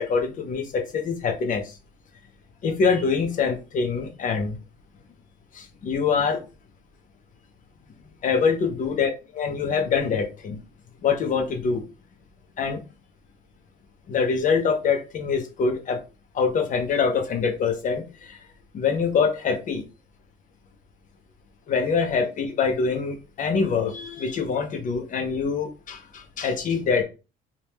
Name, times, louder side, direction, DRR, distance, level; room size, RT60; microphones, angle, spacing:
voice 1, 0.0-1.8 2.6-4.6 5.5-6.4 8.2-10.6 11.0-11.8 12.6-12.8 14.1-16.0 16.3-18.4 18.7-19.8 21.7-27.0, left 5 dB, 50° left, 6 dB, 0.9 m, -24 dB
3.4 x 2.5 x 2.9 m, 0.30 s
cardioid pair, 110°, 17 cm